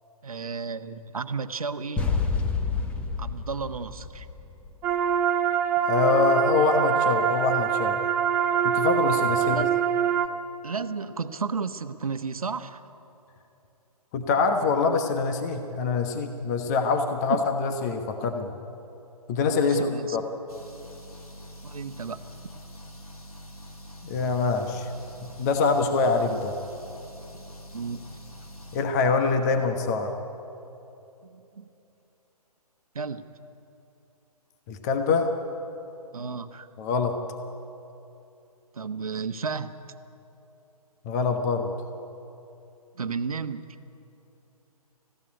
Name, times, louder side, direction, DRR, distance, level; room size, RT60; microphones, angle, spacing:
voice 1, 0.2-2.1 3.2-4.3 9.4-9.7 10.6-12.8 17.3-17.4 19.5-20.2 21.6-22.3 27.7-28.0 31.3-31.7 32.9-33.2 36.1-36.7 38.7-39.8 42.9-43.7, right 5 dB, 65° right, 10 dB, 1.2 m, -33 dB
sound 1, 2.0-4.9, left 5 dB, 5° left, 0.9 m, -28 dB
sound 2, 4.8-10.3, right 8 dB, 10° right, 0.5 m, -24 dB
voice 2, 5.9-8.0 8.6-9.6 14.1-18.5 19.3-20.2 24.0-24.9 25.4-26.5 28.7-30.2 34.7-35.3 36.8-37.2 41.0-41.7, left 4 dB, 25° left, 6 dB, 1.1 m, -24 dB
sound 3, 20.5-28.8, equal, 65° left, 3.1 m, -45 dB
19.5 x 15.5 x 9.8 m, 2.9 s
figure-of-eight pair, 135°, 20 cm